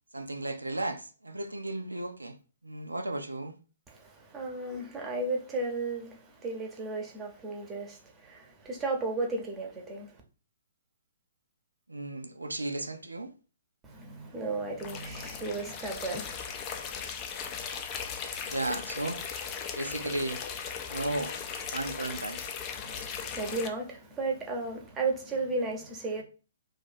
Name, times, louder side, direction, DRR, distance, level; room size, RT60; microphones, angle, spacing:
voice 1, 0.1-2.4 2.6-3.6 11.9-13.3 18.5-19.2 19.8-20.4 20.9-21.3 21.7-22.4, right 2 dB, 85° right, 0.4 m, -34 dB
voice 2, 3.9-10.2 13.8-17.1 22.8-26.2, right 3 dB, 15° right, 0.8 m, -35 dB
sound 1, 14.8-23.7, left 7 dB, 25° left, 0.4 m, -38 dB
2.6 x 2.5 x 4.0 m
figure-of-eight pair, 125°, 0 cm